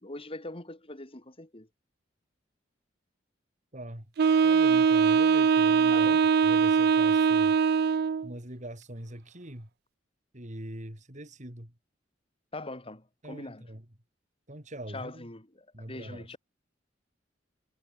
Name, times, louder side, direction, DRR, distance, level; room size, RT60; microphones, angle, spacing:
voice 1, 0.0-1.7 5.9-6.2 12.5-13.7 14.9-16.4, left 2 dB, 30° left, 3.4 m, -42 dB
voice 2, 3.7-4.1 4.4-6.1 6.4-7.5 8.2-9.7 10.3-11.7 13.2-13.8 14.5-15.3 15.7-16.3, right 1 dB, 40° right, 4.9 m, -42 dB
Wind instrument woodwind instrument, 4.2-8.3, right 6 dB, 55° right, 0.3 m, -22 dB
head